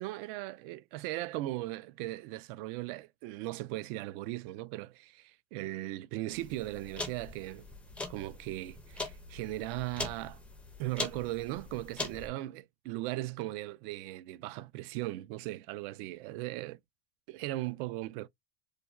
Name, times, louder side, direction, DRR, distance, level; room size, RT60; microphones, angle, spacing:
voice 1, 0.0-7.7 8.1-10.4 10.8-16.8 17.3-18.3, right 17 dB, 60° right, 0.4 m, -38 dB
sound 1, 6.3-12.3, left 3 dB, 5° left, 0.4 m, -42 dB
3.3 x 2.1 x 2.3 m
supercardioid pair, 145°, 31 cm